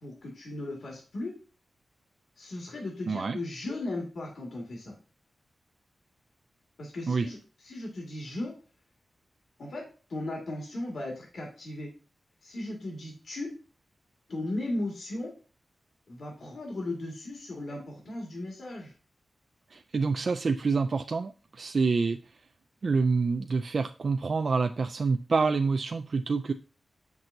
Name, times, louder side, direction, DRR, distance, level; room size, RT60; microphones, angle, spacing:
voice 1, 0.0-1.3 2.4-4.9 6.8-7.4 7.6-8.5 9.6-9.8 10.1-11.9 12.4-13.5 14.3-15.3 16.1-18.9, left 2 dB, 70° left, -2 dB, 2.0 m, -36 dB
voice 2, 3.1-3.4 7.1-7.3 19.7-22.2 22.8-26.5, right 4 dB, 50° right, 7 dB, 0.3 m, -27 dB
7.6 x 6.0 x 2.7 m, 0.36 s
wide cardioid pair, 150°, 0 cm